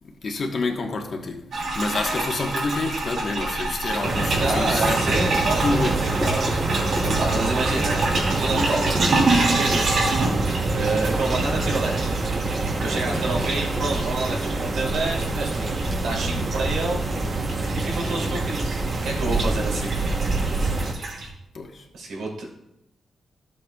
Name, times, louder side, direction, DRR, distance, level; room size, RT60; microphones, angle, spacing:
voice 1, 0.0-5.0 5.6-6.1 7.0-7.2 21.5-21.9, left 3 dB, 50° left, 1.2 m, -28 dB
sound 1, 1.5-21.3, right 2 dB, 65° right, 2.2 m, -28 dB
sound 2, 4.0-20.9, right 2 dB, 35° right, 1.0 m, -26 dB
voice 2, 4.4-6.5 6.8-9.0 9.4-10.1 10.7-12.1 12.8-15.7 16.0-17.1 17.7-20.0 21.9-22.5, right 2 dB, 85° right, 2.8 m, -28 dB
sound 3, 6.2-7.2 8.2-8.3 8.9-9.1 9.7-9.9 11.1-11.9 13.1-14.0, left 1 dB, 5° left, 1.0 m, -34 dB
13.0 x 7.8 x 2.3 m
cardioid pair, 95°, 0 cm